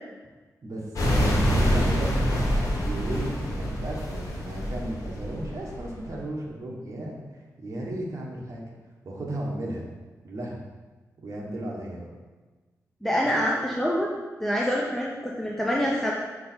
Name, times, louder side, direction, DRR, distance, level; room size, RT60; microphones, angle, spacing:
voice 1, 0.6-8.6 9.0-9.9 10.2-10.6 11.2-12.1 13.2-13.4, right 1 dB, 60° right, -2 dB, 1.4 m, -35 dB
sound 1, 1.0-6.2, equal, 70° left, 1.4 m, -26 dB
voice 2, 13.0-14.1 14.4-16.1, equal, 5° left, -4 dB, 0.7 m, -26 dB
5.2 x 5.1 x 4.4 m, 1.3 s
wide cardioid pair, 120°, 6 cm